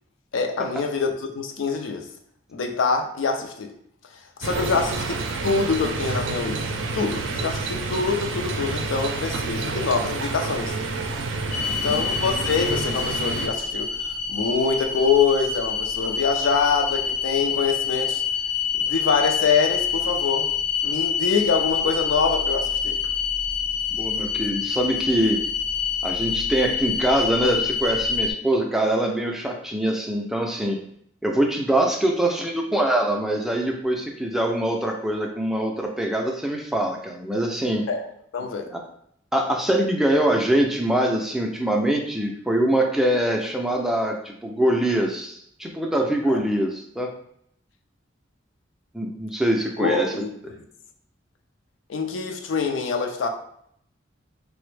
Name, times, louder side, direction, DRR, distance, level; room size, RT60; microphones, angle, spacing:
voice 1, 0.3-2.1 2.5-3.7 4.4-10.7 11.8-18.2 18.8-20.5 20.8-23.0 37.9-38.1 38.3-38.7 46.3-46.4 49.8-50.6 51.9-53.3, left 5 dB, 85° left, 4 dB, 0.4 m, -25 dB
sound 1, 4.4-13.5, right 3 dB, 70° right, 0.4 m, -29 dB
sound 2, 11.5-28.3, left 6 dB, 65° left, 0.8 m, -26 dB
voice 2, 11.7-12.0 23.9-25.4 26.0-30.8 31.2-37.8 38.7-38.8 39.3-47.1 48.9-50.1, right 1 dB, ahead, 1 dB, 0.3 m, -23 dB
3.3 x 2.0 x 3.2 m, 0.69 s
head